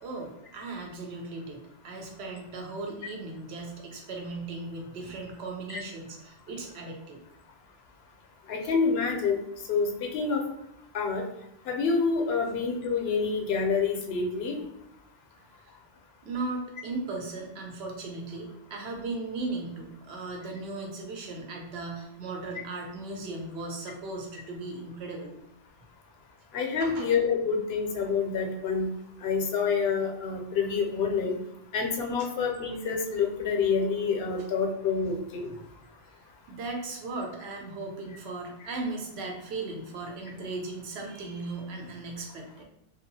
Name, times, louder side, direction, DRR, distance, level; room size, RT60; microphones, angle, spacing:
voice 1, 0.0-7.2 15.7-15.8 16.2-25.3 26.8-27.1 32.2-32.3 35.0-35.1 35.4-35.9 36.5-42.6, right 3 dB, 85° right, 1 dB, 0.9 m, -37 dB
voice 2, 8.5-9.4 9.7-10.4 10.9-11.2 11.7-14.6 26.5-28.9 29.2-31.3 31.7-35.5, left 5 dB, 80° left, 2 dB, 0.8 m, -27 dB
2.7 x 2.3 x 2.6 m, 0.85 s
omnidirectional pair, 1.0 m